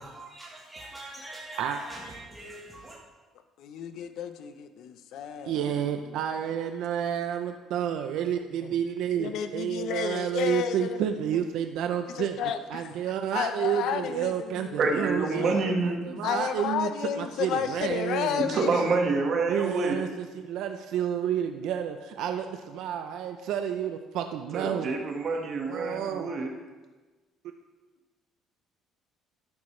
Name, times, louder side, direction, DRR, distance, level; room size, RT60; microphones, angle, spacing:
voice 1, 0.0-2.9, right 1 dB, 10° right, -5 dB, 1.5 m, -43 dB
voice 2, 3.6-5.8 8.6-8.8 9.2-11.0 11.3-11.4 12.1-12.8 13.3-15.8 16.2-18.9, left 8 dB, 70° left, 9 dB, 0.8 m, -32 dB
voice 3, 5.4-12.4 12.7-16.9 17.2-18.4 19.5-24.9 25.7-26.3, right 9 dB, 75° right, 6 dB, 0.6 m, -30 dB
voice 4, 14.8-16.2 18.4-20.1 24.5-26.5, right 3 dB, 50° right, 2 dB, 1.7 m, -27 dB
12.5 x 11.0 x 3.3 m, 1.3 s
cardioid pair, 140°, 0 cm